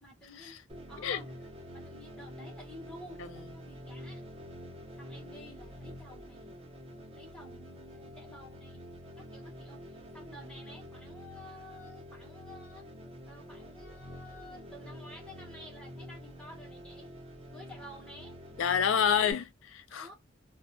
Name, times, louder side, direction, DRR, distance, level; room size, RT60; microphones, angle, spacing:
voice 1, 0.0-1.4 1.7-4.3 5.0-6.6 7.1-12.9 13.3-17.1 17.5-18.4 19.9-20.2, left 1 dB, 5° left, 1.2 m, -52 dB
sound 1, 0.7-19.3, equal, 30° right, 0.8 m, -47 dB
voice 2, 18.6-20.1, left 8 dB, 80° left, 0.4 m, -28 dB
2.4 x 2.2 x 2.2 m
head